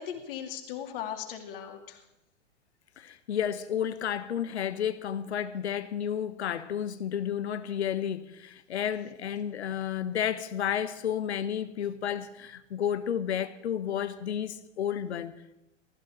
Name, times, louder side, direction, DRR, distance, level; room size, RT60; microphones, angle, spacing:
voice 1, 0.0-2.0, left 9 dB, 50° left, 2.6 m, -38 dB
voice 2, 3.0-15.6, left 9 dB, 65° left, 1.2 m, -32 dB
18.5 x 15.0 x 4.5 m
figure-of-eight pair, 105°, 36 cm